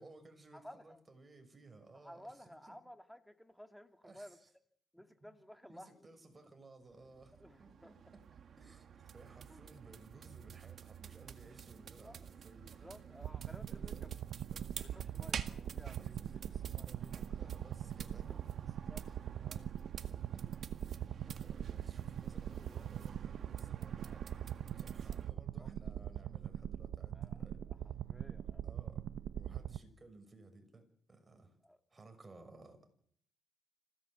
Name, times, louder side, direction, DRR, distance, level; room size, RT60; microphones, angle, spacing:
voice 1, 0.0-2.8 4.0-4.5 5.2-5.3 5.7-8.2 8.6-12.7 13.7-14.1 14.5-14.8 16.0-19.2 19.9-20.5 21.4-24.5 24.8-27.6 28.6-31.6 31.9-32.9, right 3 dB, 25° right, 6.4 m, -59 dB
voice 2, 0.5-1.0 2.0-4.4 4.9-5.9 7.4-7.9 9.5-9.6 12.0-12.3 12.6-14.1 14.8-16.4 16.8-17.2 18.2-19.0 19.3-19.7 21.3-21.4 25.1-25.2 25.6-25.7 27.1-27.8 28.1-28.6 31.6-31.8, equal, 5° left, 2.2 m, -56 dB
sound 1, 6.8-25.3, right 7 dB, 55° right, 1.9 m, -50 dB
sound 2, 13.2-29.8, right 10 dB, 75° right, 0.9 m, -42 dB
26.5 x 17.0 x 8.1 m
cardioid pair, 90°, 0 cm